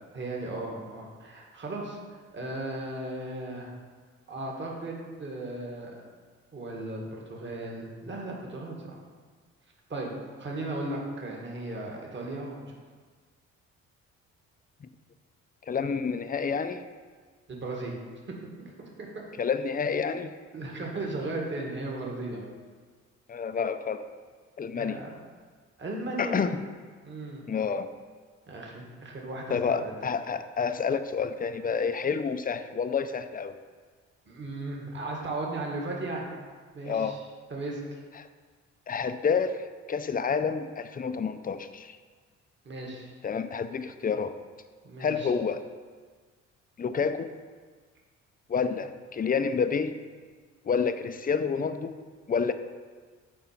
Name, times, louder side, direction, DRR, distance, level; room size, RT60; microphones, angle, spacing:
voice 1, 0.1-2.0 2.3-3.7 4.3-6.0 6.5-8.9 9.9-10.1 10.4-12.7 17.5-17.9 18.6-19.2 20.5-22.4 24.7-25.1 25.8-26.4 27.0-27.4 28.5-29.9 34.3-36.2 36.7-37.2 37.5-38.0 42.6-43.1 44.8-45.3, right 2 dB, 40° right, -1 dB, 1.8 m, -36 dB
voice 2, 15.7-16.8 19.4-20.3 23.3-24.0 24.6-25.0 26.2-26.6 27.5-27.9 29.5-33.5 36.8-37.2 38.2-38.3 38.9-42.0 43.2-44.3 45.0-45.6 46.8-47.3 48.5-49.9 50.7-52.0 52.3-52.5, left 6 dB, 30° left, 10 dB, 0.5 m, -29 dB
7.7 x 4.6 x 5.9 m, 1.5 s
cardioid pair, 90°, 30 cm